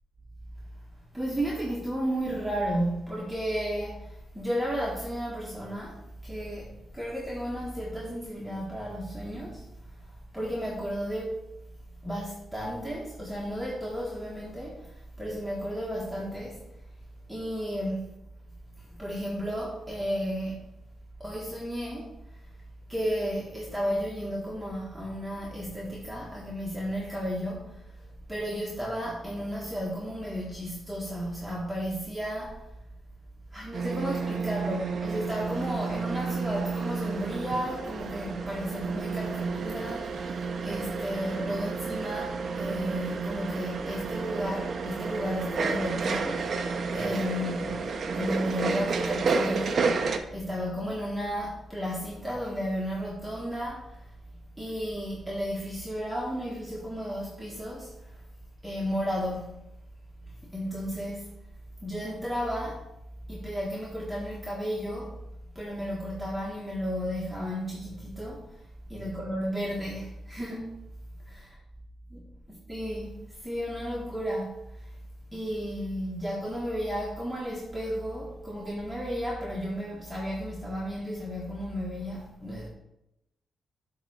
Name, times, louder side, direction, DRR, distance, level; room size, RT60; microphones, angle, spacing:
voice 1, 1.1-10.1 10.3-11.4 12.0-16.6 17.3-18.1 18.9-20.6 21.2-22.5 22.9-32.7 33.5-46.7 46.9-47.8 48.1-54.1 54.6-58.2 58.6-59.5 60.3-61.3 61.8-62.9 63.3-65.1 65.5-68.6 68.9-70.7 71.3-71.6 72.1-72.2 72.5-74.9 75.3-82.7, equal, 5° right, -5 dB, 1.4 m, -33 dB
sound 1, 33.7-50.2, right 4 dB, 55° right, 0.8 m, -31 dB
8.1 x 3.7 x 6.4 m, 0.86 s
cardioid pair, 120°, 0 cm